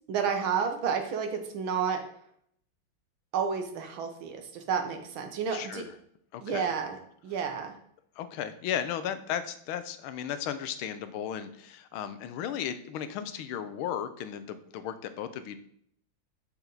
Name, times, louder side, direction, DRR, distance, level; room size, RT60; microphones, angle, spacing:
voice 1, 0.1-2.0 3.3-5.9 6.4-7.7, right 6 dB, 75° right, 6 dB, 1.8 m, -31 dB
voice 2, 5.5-5.9 6.3-6.7 8.2-15.6, left 9 dB, 85° left, 11 dB, 1.5 m, -35 dB
7.2 x 6.7 x 3.9 m, 0.68 s
omnidirectional pair, 2.2 m